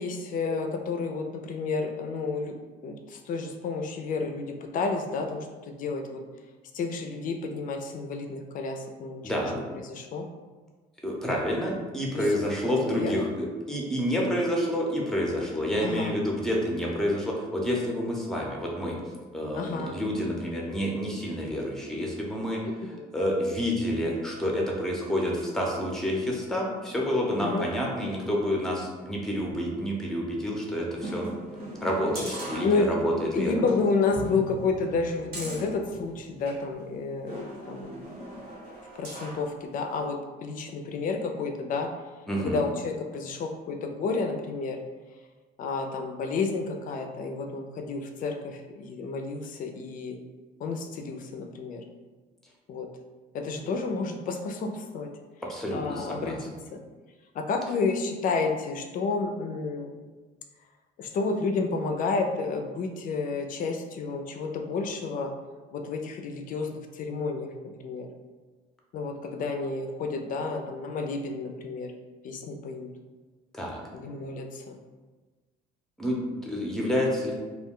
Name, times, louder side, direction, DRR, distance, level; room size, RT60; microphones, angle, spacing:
voice 1, 0.0-2.6 2.8-6.2 6.7-10.2 12.1-13.3 15.8-16.1 19.5-20.0 22.9-23.1 27.4-27.7 32.6-32.9 33.3-37.9 39.0-41.9 42.4-44.8 45.6-50.2 50.6-51.8 52.7-52.9 53.3-55.1 55.7-56.4 56.7-56.8 57.3-60.0 61.0-65.3 65.7-67.5 67.8-68.1 68.9-71.9 72.2-72.9 73.9-74.8, left 4 dB, 55° left, 4 dB, 0.4 m, -30 dB
voice 2, 9.2-9.6 11.0-19.0 19.3-22.6 23.1-31.3 31.8-33.6 42.3-42.6 55.5-56.4 73.5-73.8 76.0-77.3, equal, 5° left, -2 dB, 0.6 m, -28 dB
sound 1, 31.0-33.2 33.6-33.7 34.1-36.6 37.3-39.5 39.9-40.0, right 1 dB, 55° right, 1.0 m, -39 dB
2.3 x 2.2 x 3.6 m, 1.3 s
cardioid pair, 110°, 17 cm